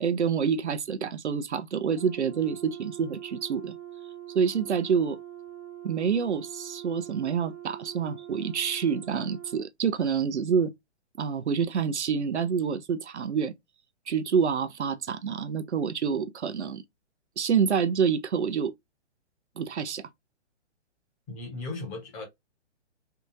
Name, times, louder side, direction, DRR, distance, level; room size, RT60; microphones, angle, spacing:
voice 1, 0.0-3.8 4.3-5.2 5.8-10.7 11.2-13.5 14.1-16.8 17.4-18.7 19.6-20.1, right 6 dB, 75° right, 0.5 m, -27 dB
Brass instrument, 1.9-9.7, right 12 dB, 20° right, 0.9 m, -43 dB
voice 2, 21.3-22.2, left 3 dB, 20° left, 1.2 m, -36 dB
3.4 x 2.4 x 2.9 m
figure-of-eight pair, 125°, 35 cm